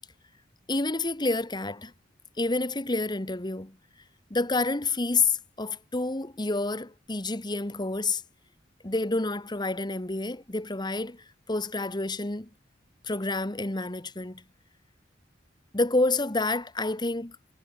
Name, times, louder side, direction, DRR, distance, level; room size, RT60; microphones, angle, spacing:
voice 1, 0.7-1.9 2.4-3.8 4.3-8.2 8.8-12.5 13.0-14.4 15.7-17.4, left 3 dB, 25° left, 1.5 m, -28 dB
head